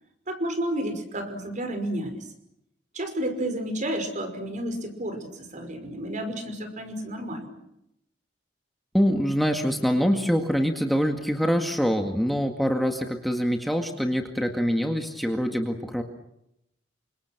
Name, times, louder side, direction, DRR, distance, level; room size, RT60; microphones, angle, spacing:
voice 1, 0.3-2.2 2.9-7.6, right 1 dB, 45° right, 7 dB, 5.5 m, -31 dB
voice 2, 8.9-16.0, equal, ahead, 3 dB, 2.0 m, -24 dB
29.5 x 26.0 x 6.1 m, 0.81 s
head